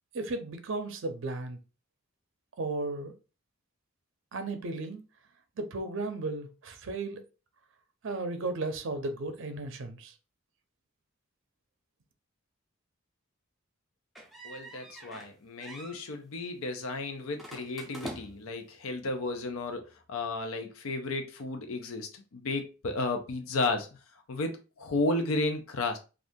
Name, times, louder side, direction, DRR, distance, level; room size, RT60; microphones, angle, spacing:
voice 1, 0.1-1.6 2.6-3.1 4.3-5.0 5.6-7.2 8.0-10.1, right 2 dB, 60° right, 0.5 m, -35 dB
sound 1, 14.1-15.3 15.6-16.0 17.4-18.6, right 1 dB, ahead, 0.5 m, -44 dB
voice 2, 14.4-23.9 24.3-26.0, left 2 dB, 85° left, 0.6 m, -33 dB
2.6 x 2.4 x 3.5 m
head